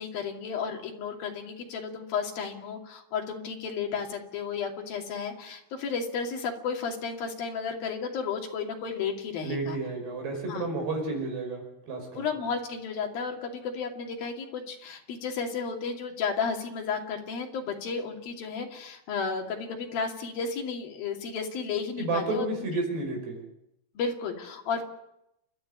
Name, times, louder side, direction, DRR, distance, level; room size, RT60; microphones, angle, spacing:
voice 1, 0.0-9.8 10.5-10.7 12.2-22.5 24.0-24.8, left 5 dB, 55° left, 2 dB, 3.8 m, -33 dB
voice 2, 9.4-12.2 22.0-23.4, right 2 dB, 55° right, 2 dB, 7.6 m, -31 dB
29.0 x 12.5 x 9.9 m, 0.83 s
omnidirectional pair, 5.6 m